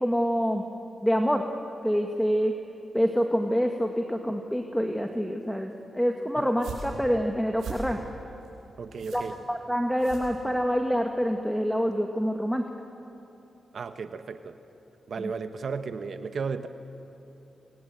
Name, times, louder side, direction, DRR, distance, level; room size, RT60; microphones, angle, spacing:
voice 1, 0.0-0.6 1.0-1.4 1.8-2.5 2.9-8.0 9.1-9.2 9.5-12.6 15.2-15.3, equal, ahead, 3 dB, 2.1 m, -26 dB
sound 1, 6.4-10.9, right 4 dB, 90° right, 7.0 m, -42 dB
voice 2, 8.8-9.3 13.7-14.6 15.1-16.7, right 5 dB, 65° right, 9 dB, 1.3 m, -34 dB
26.5 x 26.0 x 8.0 m, 3.0 s
supercardioid pair, 50°, 0 cm